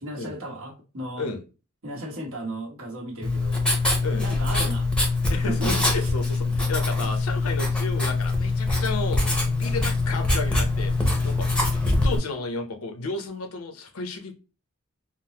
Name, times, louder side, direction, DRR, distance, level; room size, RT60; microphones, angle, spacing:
voice 1, 0.0-1.3 1.8-3.6 4.2-4.9 5.4-6.1, right 1 dB, 65° right, 1.2 m, -35 dB
Writing, 3.2-12.2, left 2 dB, 5° left, 0.7 m, -23 dB
voice 2, 5.3-11.5 11.8-14.4, left 3 dB, 80° left, 0.7 m, -33 dB
3.7 x 2.0 x 2.8 m
head